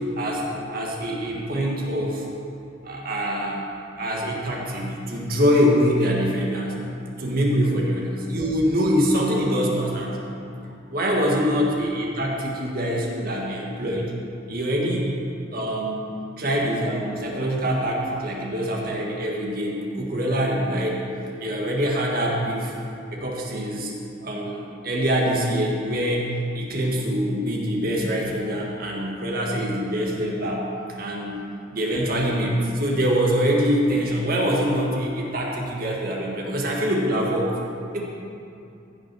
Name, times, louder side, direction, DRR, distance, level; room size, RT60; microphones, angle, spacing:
voice 1, 0.2-2.3 2.8-6.8 7.2-10.3 10.9-14.1 14.5-15.2 15.5-16.1 16.4-21.0 21.4-22.7 23.1-23.9 24.2-30.7 31.0-31.4 31.7-37.5 37.9-38.0, equal, 50° right, -2 dB, 1.8 m, -24 dB
15.5 x 6.2 x 6.3 m, 2.6 s
head